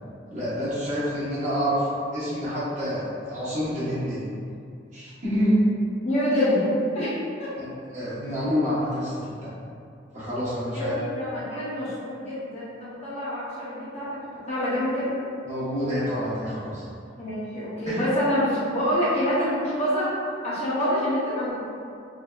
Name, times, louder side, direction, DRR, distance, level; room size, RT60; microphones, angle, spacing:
voice 1, 0.3-1.9 2.1-4.2 4.9-5.6 7.6-7.7 7.9-9.5 10.1-10.9 15.4-16.8 17.9-18.0, equal, 40° right, -12 dB, 1.1 m, -27 dB
voice 2, 6.0-7.1 7.4-7.5 10.7-14.2 14.5-15.2 17.2-20.1 20.4-21.6, equal, 35° left, -9 dB, 0.7 m, -26 dB
3.4 x 2.7 x 2.3 m, 2.4 s
head